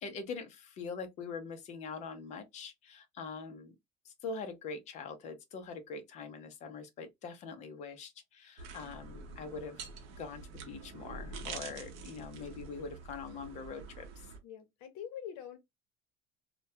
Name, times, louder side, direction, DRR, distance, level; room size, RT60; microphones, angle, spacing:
voice 1, 0.0-3.8 4.0-14.3, left 5 dB, 35° left, 0.5 m, -43 dB
sound 1, 8.6-14.4, right 4 dB, 70° right, 0.7 m, -46 dB
voice 2, 14.4-15.6, left 9 dB, 70° left, 0.7 m, -45 dB
2.2 x 2.1 x 2.6 m
cardioid pair, 180°, 21 cm